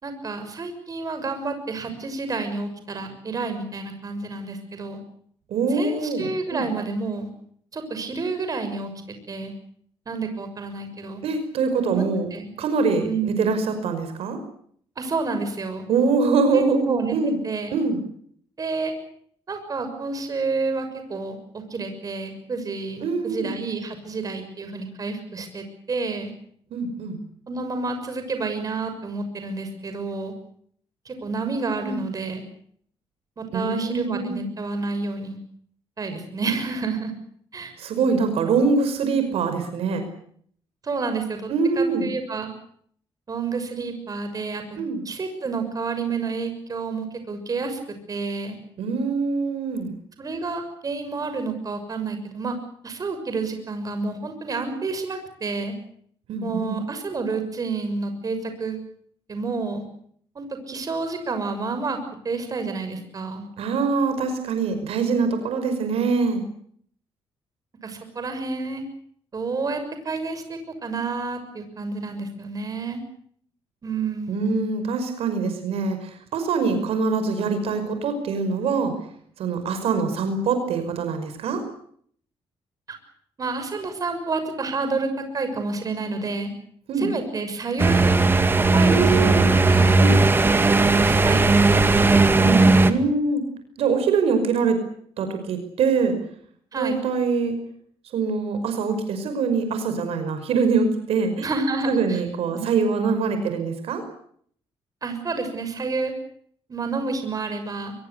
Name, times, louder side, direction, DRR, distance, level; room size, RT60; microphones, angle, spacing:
voice 1, 0.0-5.0 5.7-7.3 7.7-8.9 9.3-9.5 10.1-11.2 11.8-12.0 12.3-12.5 13.0-13.4 15.0-15.9 16.5-17.8 18.6-18.9 19.5-26.3 27.5-30.3 31.0-32.4 33.4-35.4 36.0-37.1 37.5-37.7 40.8-41.5 41.7-42.5 43.3-44.8 45.0-47.8 48.1-48.6 50.2-52.6 52.8-55.7 56.4-58.8 59.3-59.8 60.3-62.0 62.2-63.5 67.8-68.8 69.3-73.0 73.8-74.6 83.4-86.5 87.0-88.2 88.6-89.4 89.7-90.0 91.0-92.0 92.3-92.9 96.7-97.0 101.4-102.2 102.5-102.7 105.0-106.1 106.7-107.9, right 4 dB, 35° right, 7 dB, 6.5 m, -29 dB
voice 2, 5.5-6.7 11.2-12.3 12.6-14.4 15.9-17.4 17.7-18.0 23.0-23.5 26.7-27.2 31.8-32.0 33.5-34.4 37.8-40.0 41.5-42.1 44.8-45.0 48.8-49.9 56.3-56.8 63.6-66.4 74.3-78.9 79.4-81.6 86.9-87.1 88.8-89.5 90.0-90.2 92.9-93.4 93.8-94.8 95.2-96.2 96.7-97.6 98.1-101.5 101.9-104.0, right 4 dB, 80° right, 8 dB, 5.6 m, -24 dB
sound 1, 87.8-92.9, right 3 dB, 20° right, 2.0 m, -17 dB
24.0 x 22.0 x 8.1 m, 0.63 s
cardioid pair, 120°, 10 cm